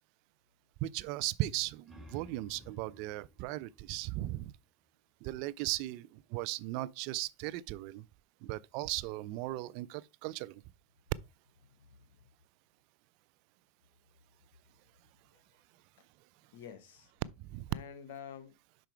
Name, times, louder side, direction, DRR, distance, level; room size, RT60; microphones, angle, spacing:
voice 1, 0.8-4.5 5.2-8.0 8.4-10.6 17.4-17.7, right 17 dB, 60° right, 0.4 m, -37 dB
sound 1, 1.8-5.0, equal, 10° right, 2.3 m, -57 dB
voice 2, 11.7-12.2 15.3-15.5 16.0-16.1 16.5-17.1 17.7-18.5, left 8 dB, 70° left, 1.3 m, -49 dB
5.7 x 5.2 x 4.5 m
hypercardioid pair, 100°, 0 cm